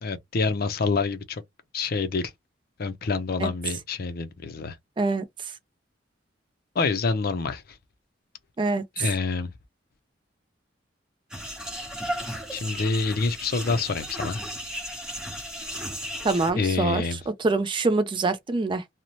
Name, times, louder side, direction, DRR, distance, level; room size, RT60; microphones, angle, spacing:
voice 1, 0.0-1.4 1.7-2.3 2.8-4.8 6.8-7.6 9.0-9.5 12.5-14.4 16.5-17.2, left 4 dB, 55° left, 0.5 m, -27 dB
sound 1, 11.3-16.5, equal, 5° right, 0.9 m, -35 dB
voice 2, 16.2-17.0 17.4-18.8, right 3 dB, 25° right, 0.4 m, -24 dB
2.6 x 2.0 x 2.8 m
head